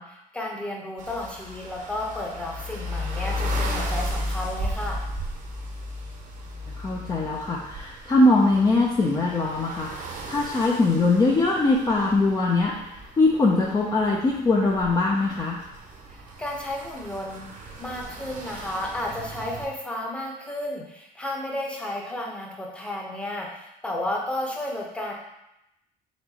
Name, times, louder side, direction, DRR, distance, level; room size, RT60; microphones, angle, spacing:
voice 1, 0.0-5.0 16.1-17.5 17.8-25.1, left 1 dB, 5° left, -2 dB, 0.9 m, -32 dB
sound 1, 1.0-19.7, left 1 dB, 50° right, 0.8 m, -35 dB
voice 2, 6.8-15.6, left 2 dB, 20° left, -3 dB, 0.6 m, -22 dB
4.4 x 3.8 x 2.9 m, 0.86 s
cardioid pair, 110°, 17 cm